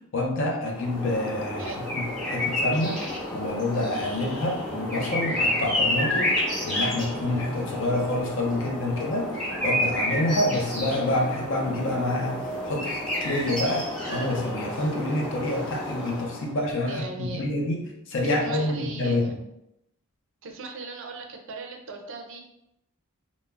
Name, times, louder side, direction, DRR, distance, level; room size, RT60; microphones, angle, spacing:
voice 1, 0.1-3.0 3.3-9.3 9.6-19.2, left 1 dB, 60° left, 0 dB, 0.6 m, -27 dB
sound 1, 0.6-16.5, left 1 dB, 5° left, 0.7 m, -30 dB
voice 2, 1.6-1.9 16.9-17.4 18.2-19.3 20.4-22.4, right 3 dB, 60° right, 3 dB, 0.4 m, -38 dB
2.3 x 2.0 x 3.3 m, 0.84 s
head